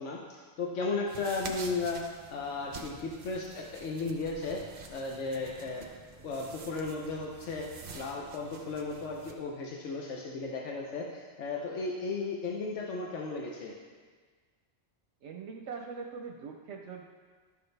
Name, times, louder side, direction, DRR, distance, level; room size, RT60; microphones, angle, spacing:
voice 1, 0.0-2.0 2.3-4.6 4.9-5.9 6.2-7.7 7.9-13.7, left 3 dB, 85° left, -1 dB, 1.1 m, -35 dB
sound 1, 1.1-9.3, right 4 dB, 55° right, 0.9 m, -48 dB
voice 2, 15.2-17.0, right 5 dB, 75° right, 2 dB, 0.9 m, -42 dB
11.0 x 6.8 x 3.3 m, 1.5 s
omnidirectional pair, 1.2 m